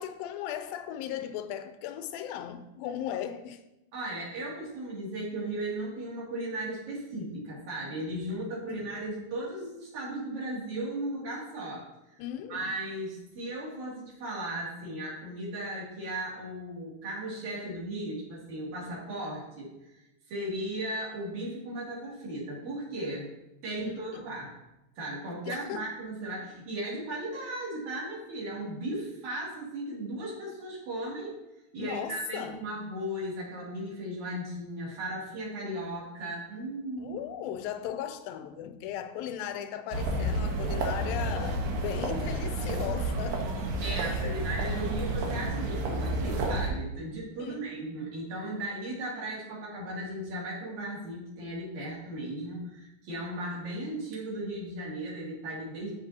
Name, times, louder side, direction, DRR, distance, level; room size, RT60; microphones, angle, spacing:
voice 1, 0.0-3.6 8.7-8.9 12.2-12.7 23.7-24.3 25.5-25.9 31.8-32.6 37.0-43.5 43.9-44.5 47.4-47.7, left 10 dB, 90° left, 2.4 m, -37 dB
voice 2, 3.9-11.8 12.1-12.2 12.5-23.3 23.6-24.5 25.0-31.4 31.7-37.2 43.8-55.9, right 1 dB, 60° right, 4.0 m, -36 dB
sound 1, 39.9-46.7, right 2 dB, 80° right, 2.9 m, -30 dB
14.0 x 6.7 x 2.9 m
omnidirectional pair, 4.0 m